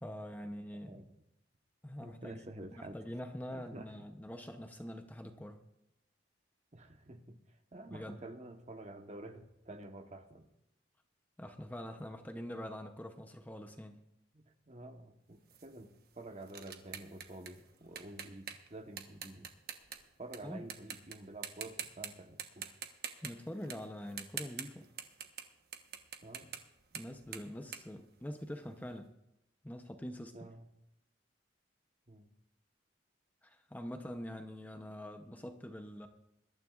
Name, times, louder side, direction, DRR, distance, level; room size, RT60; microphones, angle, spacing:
voice 1, 0.0-1.0 1.8-5.6 7.9-8.2 11.4-14.0 20.4-20.6 23.2-24.9 26.9-29.1 29.6-30.5 33.4-36.1, equal, 10° left, 6 dB, 0.7 m, -44 dB
voice 2, 2.0-3.0 3.5-3.9 6.7-7.4 7.7-10.5 14.3-19.5 20.2-22.7 26.2-26.5 30.3-30.7 32.1-32.3, right 2 dB, 40° right, 6 dB, 1.1 m, -49 dB
sound 1, 15.5-20.4 20.7-21.2 21.4-22.1 22.4-25.5 25.7-28.7, right 8 dB, 55° right, 1.1 m, -45 dB
21.5 x 12.5 x 2.4 m, 0.85 s
head